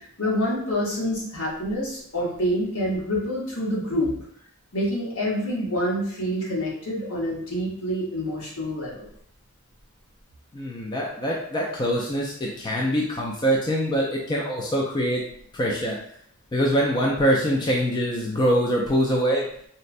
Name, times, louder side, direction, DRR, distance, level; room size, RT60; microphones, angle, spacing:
voice 1, 0.0-4.1 4.7-9.1, equal, 80° left, -5 dB, 1.1 m, -27 dB
voice 2, 10.5-15.2 15.5-16.0 16.5-19.5, equal, 20° left, -2 dB, 0.3 m, -24 dB
4.1 x 2.0 x 2.5 m, 0.66 s
head